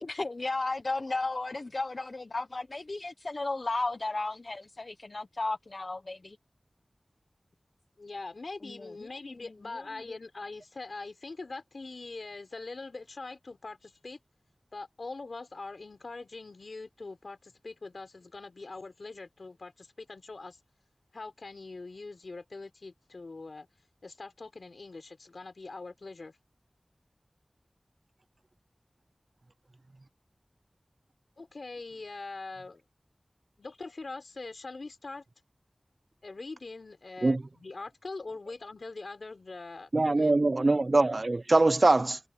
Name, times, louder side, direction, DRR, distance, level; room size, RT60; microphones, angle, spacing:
voice 1, 0.0-6.4 8.6-8.9 9.3-9.4 9.7-9.8 10.1-10.2, left 2 dB, 60° left, 1.0 m, -34 dB
voice 2, 8.0-14.2 14.7-20.6 21.1-23.7 24.0-26.3 31.4-32.8 33.6-35.2 36.2-40.9, left 3 dB, 80° left, 4.5 m, -43 dB
voice 3, 39.9-42.2, right 2 dB, 55° right, 0.6 m, -23 dB
wide cardioid pair, 50°, 0 cm